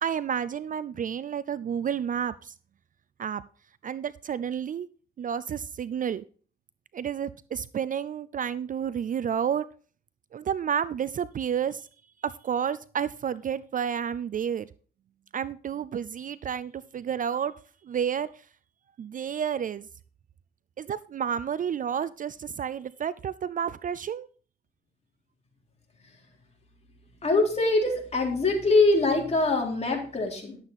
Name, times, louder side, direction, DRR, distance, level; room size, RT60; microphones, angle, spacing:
voice 1, 0.0-2.5 3.2-3.4 3.8-4.9 5.2-6.2 6.9-9.6 10.3-11.9 12.2-14.7 15.3-17.5 17.8-18.4 19.0-19.9 20.8-24.3, right 8 dB, 40° right, 16 dB, 0.4 m, -30 dB
voice 2, 27.2-30.6, left 2 dB, 30° left, 0 dB, 3.8 m, -23 dB
11.5 x 7.9 x 4.2 m, 0.41 s
cardioid pair, 90°, 20 cm